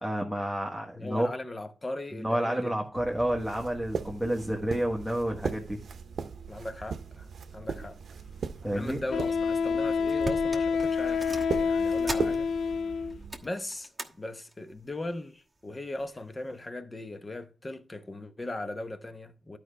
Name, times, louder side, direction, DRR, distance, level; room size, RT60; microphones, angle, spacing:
voice 1, 0.0-1.3 2.2-5.8 8.6-9.0, equal, 5° left, 1.3 m, -30 dB
voice 2, 0.9-2.7 6.5-7.3 7.5-8.0 8.7-11.3 11.6-12.5 13.4-13.9 14.2-19.6, left 1 dB, 25° left, 0.9 m, -38 dB
sound 1, 2.9-13.4, right 6 dB, 65° right, 0.8 m, -39 dB
Wind instrument woodwind instrument, 7.8-7.9 9.1-13.2, left 5 dB, 80° left, 0.4 m, -28 dB
sound 2, 9.7-9.8 10.0-12.8 13.1-14.1 14.5-14.8 15.6-16.1 16.6-16.7, right 2 dB, 10° right, 1.3 m, -40 dB
12.0 x 5.0 x 3.3 m
cardioid pair, 100°, 0 cm